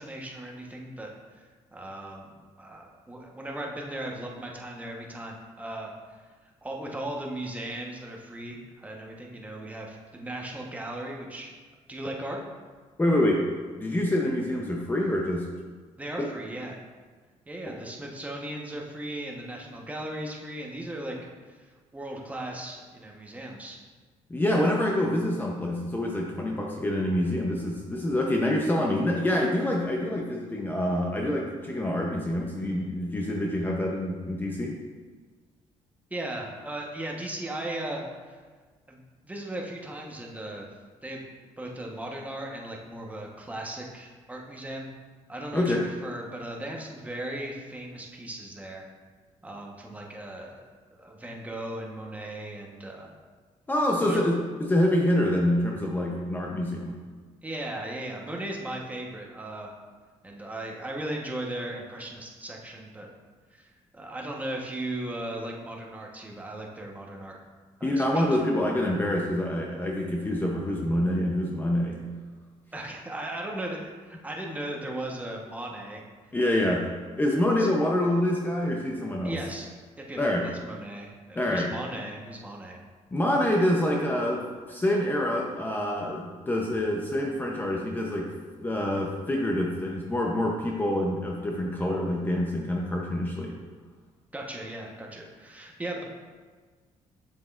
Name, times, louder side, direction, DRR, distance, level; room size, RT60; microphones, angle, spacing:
voice 1, 0.0-1.4 1.7-6.2 6.6-11.5 11.9-12.4 16.0-16.8 17.5-21.2 21.5-23.8 36.1-38.4 38.9-40.6 41.0-41.2 41.6-44.9 45.3-48.8 49.4-53.1 54.0-54.2 57.4-59.7 60.2-63.1 63.5-67.4 67.8-68.3 72.7-76.0 77.6-77.7 79.2-79.7 80.0-80.3 80.6-82.8 94.3-96.0, right 1 dB, 15° right, -1 dB, 1.1 m, -37 dB
voice 2, 13.0-13.4 13.7-15.5 16.2-16.3 17.6-17.7 24.3-34.8 45.5-45.8 53.7-57.0 67.8-72.0 76.3-76.9 77.2-79.4 80.2-80.5 81.4-81.7 83.1-88.3 88.6-93.6, left 1 dB, 15° left, -1 dB, 0.7 m, -26 dB
7.9 x 7.3 x 2.5 m, 1.4 s
cardioid pair, 115°, 12 cm